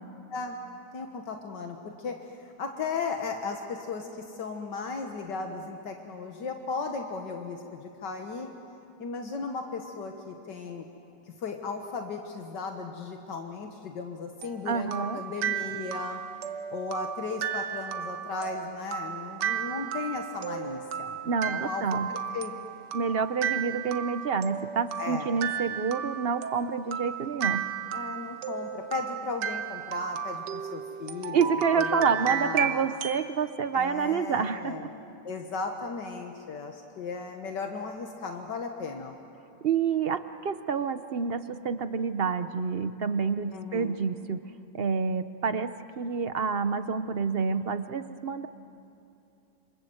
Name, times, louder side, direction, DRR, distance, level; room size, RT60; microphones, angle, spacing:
voice 1, 0.9-8.5 9.0-10.8 11.4-16.2 16.7-21.2 21.4-22.5 25.0-25.3 27.9-32.9 33.7-34.9 35.2-39.2 43.5-43.9, left 4 dB, 80° left, 4 dB, 2.0 m, -36 dB
sound 1, 14.4-33.3, right 9 dB, 80° right, 1.6 m, -34 dB
voice 2, 14.7-15.2 21.2-22.1 22.9-27.6 31.3-34.9 39.6-44.4 44.7-48.5, right 5 dB, 50° right, 11 dB, 0.7 m, -28 dB
27.5 x 27.0 x 7.9 m, 2.7 s
omnidirectional pair, 1.9 m